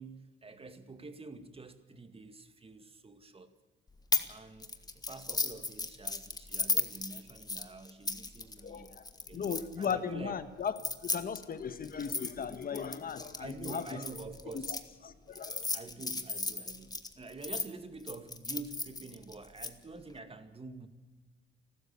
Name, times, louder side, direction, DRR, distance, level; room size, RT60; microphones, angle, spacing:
voice 1, 0.0-3.5 4.3-4.7 5.1-8.9 9.3-10.5 13.4-14.8 15.6-20.9, right 3 dB, 30° right, 9 dB, 2.1 m, -47 dB
sound 1, 4.1-4.3 4.6-9.9 10.7-14.8 15.4-17.7 18.1-19.7, left 3 dB, 20° left, 1.8 m, -35 dB
voice 2, 8.6-9.0 9.3-10.7 11.0-14.0 14.7-14.8 15.0-15.7, left 6 dB, 45° left, 11 dB, 1.4 m, -37 dB
28.5 x 13.0 x 7.1 m, 1.3 s
cardioid pair, 90°, 20 cm